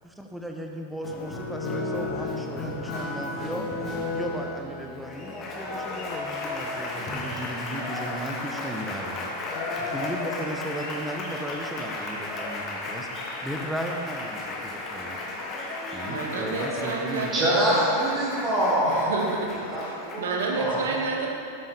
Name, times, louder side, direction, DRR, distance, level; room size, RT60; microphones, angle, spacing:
voice 1, 0.0-3.7 4.1-9.3 9.6-13.1 13.4-15.2 15.9-17.3, equal, ahead, 1 dB, 1.3 m, -36 dB
Applause, 1.0-20.7, left 2 dB, 30° left, 2.0 m, -34 dB
voice 2, 16.0-17.8 18.8-21.3, right 4 dB, 60° right, 0 dB, 1.9 m, -30 dB
voice 3, 17.3-19.2 19.7-20.7, right 1 dB, 25° right, -8 dB, 2.8 m, -25 dB
13.0 x 12.0 x 4.2 m, 2.7 s
figure-of-eight pair, 90°, 0 cm